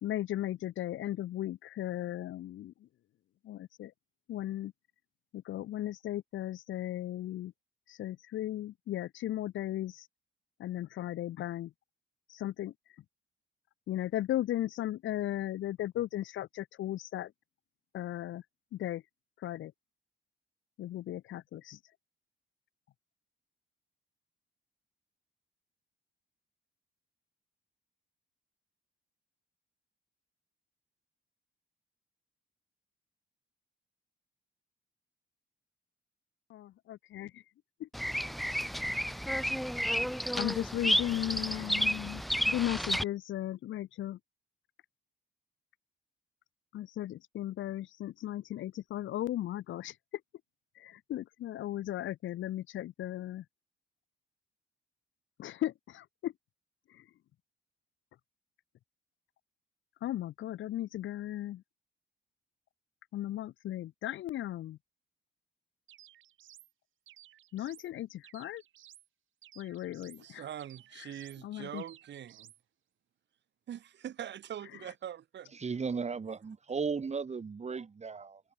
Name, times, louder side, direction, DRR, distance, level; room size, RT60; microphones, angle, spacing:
voice 1, 0.0-2.9 3.4-3.9 4.3-4.7 5.3-7.5 7.9-10.1 10.6-11.7 12.3-12.7 13.9-17.3 17.9-18.4 18.7-19.0 19.4-19.7 20.8-21.8 36.5-37.4 37.8-37.9 40.4-44.2 46.7-50.0 50.8-53.4 55.4-56.3 56.9-57.0 60.0-61.6 63.1-64.8 67.5-68.6 69.6-70.4 71.4-71.8, left 13 dB, 75° left, 1.2 m, -36 dB
Bird vocalization bird call bird song, 37.9-43.0, equal, ahead, 1.0 m, -31 dB
sound 1, 65.9-66.7 67.1-67.9 68.2-69.1 69.4-70.3 70.6-71.4 71.8-72.6, right 13 dB, 80° right, 8.0 m, -57 dB
voice 2, 70.2-72.5 73.7-75.6, right 10 dB, 60° right, 2.2 m, -43 dB
voice 3, 75.5-78.4, right 5 dB, 35° right, 2.4 m, -35 dB
cardioid pair, 90°, 20 cm